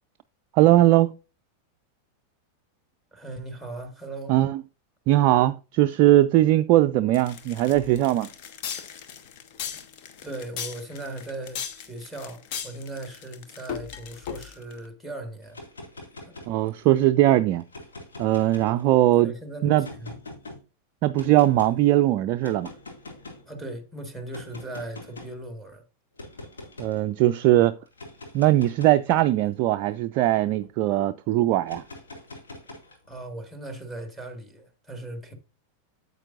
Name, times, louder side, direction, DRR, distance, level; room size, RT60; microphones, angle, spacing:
voice 1, 0.5-1.2 4.3-4.6 5.1-8.3 16.5-17.6 18.2-19.3 19.6-19.9 21.0-22.7 26.8-27.8 28.3-31.8, right 14 dB, 40° right, 0.3 m, -20 dB
voice 2, 3.1-4.4 10.2-15.6 16.3-16.4 19.2-20.1 23.5-25.8 33.1-35.3, right 2 dB, 5° left, 1.7 m, -38 dB
sound 1, 7.1-14.8, left 8 dB, 45° left, 0.9 m, -37 dB
sound 2, 15.4-17.0 17.6-19.1 19.8-20.6 21.2-21.7 22.4-23.5 24.3-25.4 26.2-27.0 27.9-30.7 31.6-33.2, left 2 dB, 70° left, 2.0 m, -44 dB
8.8 x 8.1 x 2.5 m
figure-of-eight pair, 90°, 0 cm